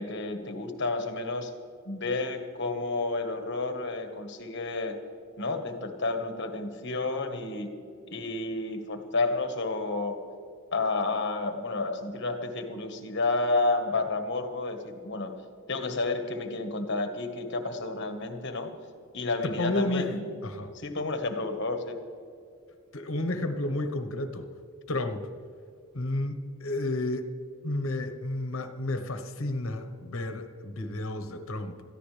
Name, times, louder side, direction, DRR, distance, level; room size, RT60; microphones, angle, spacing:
voice 1, 0.0-1.5 1.8-5.0 5.4-7.7 8.1-10.2 10.7-15.3 15.7-18.7 19.1-20.2 20.7-22.0, left 3 dB, 55° left, 6 dB, 1.5 m, -30 dB
voice 2, 19.4-20.1 20.4-20.7 22.9-24.5 24.9-25.3 25.9-27.3 27.6-31.8, left 2 dB, 70° left, 9 dB, 1.2 m, -31 dB
21.0 x 14.0 x 3.4 m, 2.4 s
head